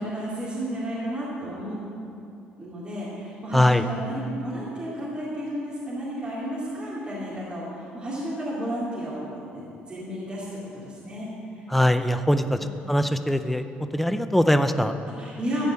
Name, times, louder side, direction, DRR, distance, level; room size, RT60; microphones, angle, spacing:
voice 1, 0.0-1.8 2.6-11.6 12.6-12.7 15.1-15.7, equal, 30° right, -8 dB, 2.7 m, -32 dB
voice 2, 3.5-3.8 11.7-12.6 12.9-13.6 13.9-14.9, left 1 dB, 5° left, 9 dB, 0.6 m, -21 dB
14.0 x 5.2 x 8.3 m, 2.7 s
cardioid pair, 105°, 4 cm